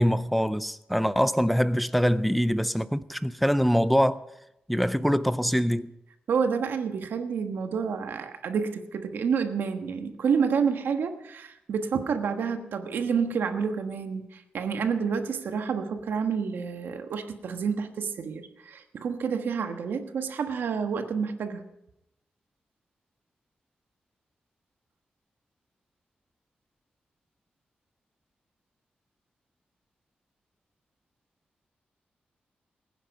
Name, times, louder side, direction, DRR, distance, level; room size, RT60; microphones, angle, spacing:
voice 1, 0.0-4.2 4.7-5.9, equal, ahead, 0.4 m, -24 dB
voice 2, 6.3-21.6, right 6 dB, 85° right, 1.3 m, -29 dB
20.5 x 9.9 x 5.3 m
wide cardioid pair, 180°, 3 cm